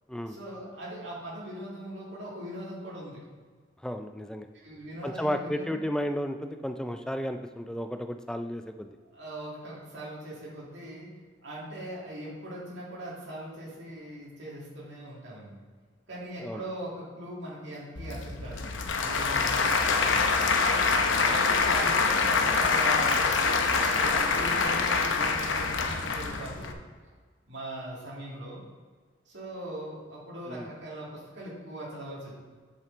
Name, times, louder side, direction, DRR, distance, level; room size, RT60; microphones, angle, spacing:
voice 1, 0.2-3.2 4.6-5.8 9.1-11.1 11.4-15.6 16.1-20.5 21.3-23.3 23.7-26.8 27.5-28.6 29.3-32.3, right 1 dB, 70° right, -6 dB, 2.5 m, -40 dB
voice 2, 3.8-4.5 5.0-8.9 16.4-16.6 30.5-30.7, equal, 5° left, 6 dB, 0.3 m, -33 dB
Applause / Crowd, 18.0-26.7, left 4 dB, 80° left, 0.7 m, -25 dB
7.4 x 6.5 x 3.9 m, 1.5 s
head